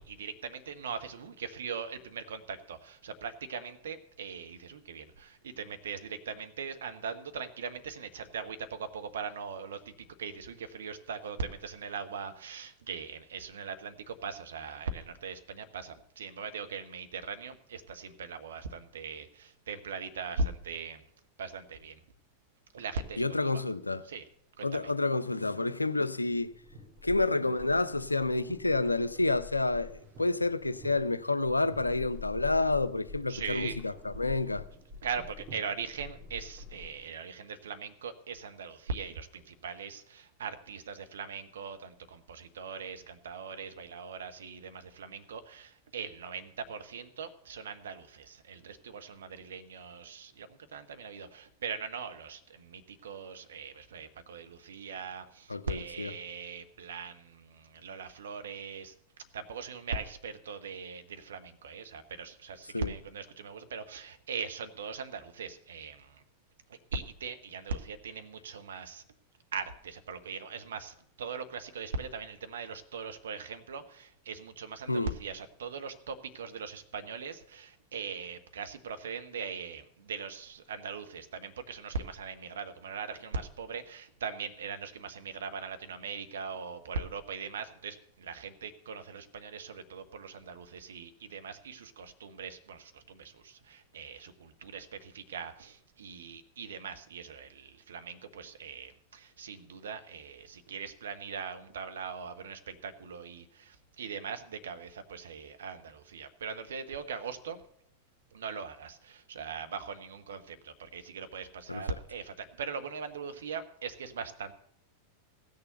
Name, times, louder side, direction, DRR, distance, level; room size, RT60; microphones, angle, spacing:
voice 1, 0.0-21.0 21.4-22.0 22.7-23.6 24.0-24.3 24.6-24.9 33.3-33.8 35.0-58.9 59.3-66.2 66.7-69.0 69.5-107.6 108.3-114.5, right 5 dB, 65° right, 1.1 m, -40 dB
voice 2, 23.2-24.0 24.6-26.5 27.0-34.6 55.5-56.1 62.7-62.9 74.9-75.1 111.7-111.8, left 2 dB, 80° left, 0.5 m, -29 dB
sound 1, 26.4-37.1, left 3 dB, 35° right, 2.5 m, -47 dB
16.0 x 6.7 x 6.7 m
figure-of-eight pair, 90°, 0 cm